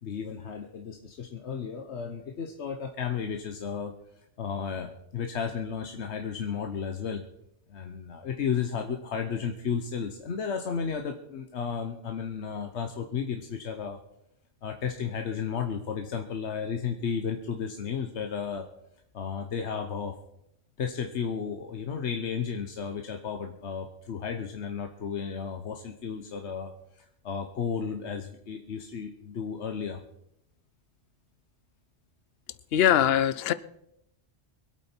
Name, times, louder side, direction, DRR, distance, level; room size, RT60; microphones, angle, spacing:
voice 1, 0.0-3.9 4.4-7.2 7.7-14.0 14.6-18.7 19.1-20.1 20.8-30.0, left 6 dB, 85° left, 1.3 m, -33 dB
voice 2, 32.7-33.5, left 10 dB, 65° left, 0.9 m, -22 dB
24.0 x 8.5 x 4.5 m
omnidirectional pair, 1.1 m